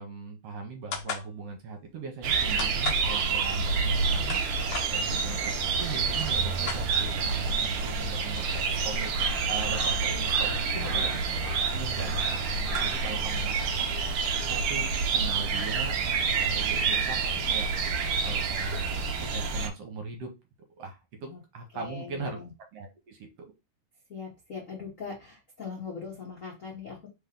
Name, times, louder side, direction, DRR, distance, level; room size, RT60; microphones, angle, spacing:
voice 1, 0.0-4.4 4.9-9.1 9.4-11.2 11.7-13.9 14.4-15.9 16.3-17.7 18.2-20.3 20.7-22.4 22.7-23.5, right 4 dB, 65° right, 3 dB, 1.7 m, -40 dB
sound 1, 0.9-1.3 2.6-3.1 4.0-4.9 5.7-5.8 6.0-7.2, left 6 dB, 65° left, 1.4 m, -35 dB
sound 2, 2.2-19.7, right 5 dB, 90° right, 1.1 m, -28 dB
voice 2, 10.6-11.3 21.2-21.4 21.7-22.5 24.1-27.1, left 5 dB, 85° left, -3 dB, 0.7 m, -41 dB
4.0 x 3.6 x 3.6 m, 0.25 s
omnidirectional pair, 3.5 m